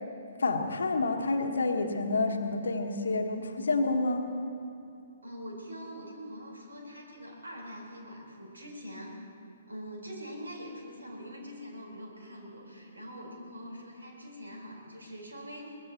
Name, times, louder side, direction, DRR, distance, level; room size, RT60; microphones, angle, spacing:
voice 1, 0.4-4.2, left 3 dB, 60° left, 4 dB, 1.4 m, -28 dB
voice 2, 5.2-9.2 9.7-15.8, equal, 70° right, -1 dB, 4.4 m, -44 dB
23.0 x 20.5 x 3.0 m, 2.6 s
figure-of-eight pair, 125°, 0 cm